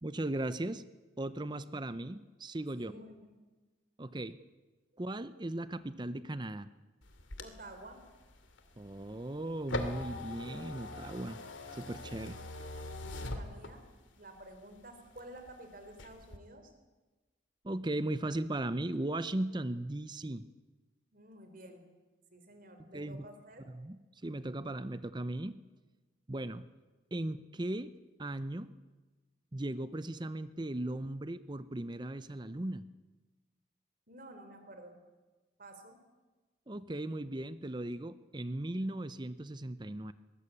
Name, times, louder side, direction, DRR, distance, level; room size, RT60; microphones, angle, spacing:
voice 1, 0.0-0.8 1.2-2.9 4.0-4.4 5.0-6.7 8.8-11.4 11.7-12.4 17.6-20.5 22.9-23.3 23.8-24.0 24.2-25.6 26.3-26.7 27.1-27.9 28.2-28.7 29.5-32.8 36.7-40.1, right 1 dB, 20° right, 13 dB, 0.7 m, -37 dB
voice 2, 2.8-3.3 7.4-8.0 13.0-13.9 14.1-16.7 21.1-21.9 22.3-23.7 34.1-35.0 35.6-36.0, right 1 dB, 45° right, 7 dB, 3.7 m, -51 dB
sound 1, 7.0-14.1 14.5-15.5 15.9-16.4, left 2 dB, 70° left, 2.5 m, -42 dB
22.5 x 19.5 x 8.5 m, 1.2 s
head